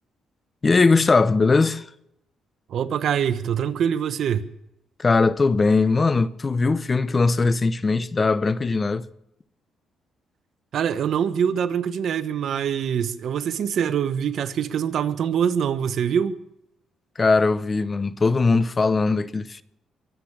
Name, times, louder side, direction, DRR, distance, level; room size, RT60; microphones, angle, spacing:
voice 1, 0.6-1.8 5.0-9.0 17.2-19.6, left 3 dB, 30° left, 0.7 m, -20 dB
voice 2, 2.7-4.5 10.7-16.4, right 8 dB, 65° right, 1.0 m, -24 dB
23.0 x 8.2 x 7.3 m
cardioid pair, 90°, 0 cm